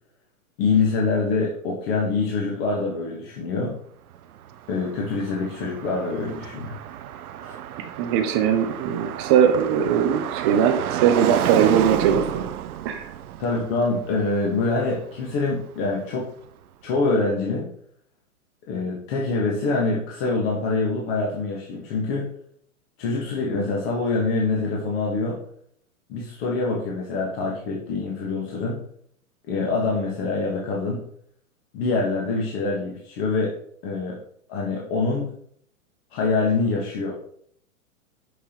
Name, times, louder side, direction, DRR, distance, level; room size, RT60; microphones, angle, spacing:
voice 1, 0.6-3.8 4.7-6.8 7.4-7.5 13.4-16.3 16.8-17.7 18.7-22.3 23.0-25.4 26.1-28.8 29.5-31.0 31.7-33.5 33.8-34.2 34.5-35.3 36.1-37.1, left 3 dB, 40° left, -2 dB, 1.4 m, -25 dB
Car passing by, 4.1-16.1, right 11 dB, 85° right, 0.6 m, -31 dB
voice 2, 7.8-12.2 12.8-13.0, right 8 dB, 20° right, 6 dB, 0.4 m, -20 dB
6.4 x 5.4 x 3.0 m, 0.64 s
hypercardioid pair, 135°, 43 cm